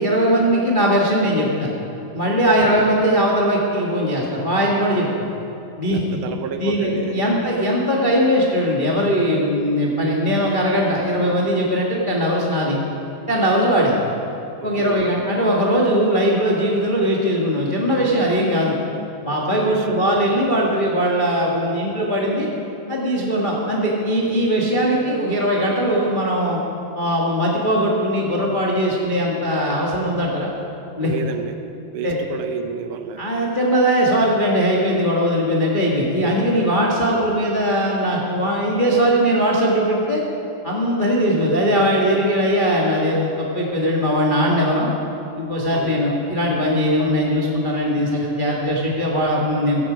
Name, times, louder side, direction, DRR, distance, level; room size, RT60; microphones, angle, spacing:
voice 1, 0.0-1.7 2.1-5.1 5.8-6.0 6.6-12.8 13.3-14.0 14.6-18.7 19.2-22.5 22.9-26.6 26.9-30.5 31.0-31.1 32.0-32.2 33.2-40.2 40.6-44.9 45.4-49.8, equal, 50° left, -4 dB, 0.5 m, -20 dB
voice 2, 5.9-7.2 14.6-15.1 19.5-19.9 31.0-31.6 31.9-33.2 45.7-46.1, right 8 dB, 75° right, 7 dB, 2.2 m, -30 dB
15.5 x 14.5 x 5.1 m, 2.8 s
omnidirectional pair, 3.9 m